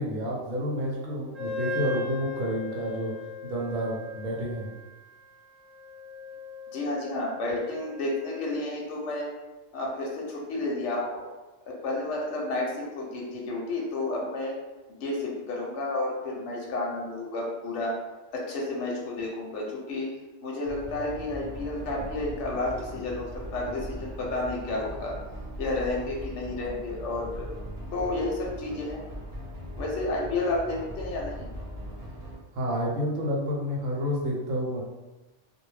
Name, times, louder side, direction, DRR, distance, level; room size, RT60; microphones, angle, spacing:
voice 1, 0.0-3.1 3.4-4.7 32.5-34.8, equal, 85° right, -3 dB, 1.0 m, -29 dB
Wind instrument woodwind instrument, 1.3-8.7, left 4 dB, 30° right, 0.5 m, -38 dB
voice 2, 6.7-9.3 9.7-11.3 11.8-14.5 15.0-17.9 18.5-20.1 20.4-25.1 25.6-27.5 27.9-29.0 29.8-31.5, left 2 dB, 70° left, -2 dB, 0.9 m, -31 dB
sound 1, 20.6-32.3, equal, 45° right, 0.8 m, -39 dB
2.3 x 2.1 x 3.1 m, 1.1 s
omnidirectional pair, 1.3 m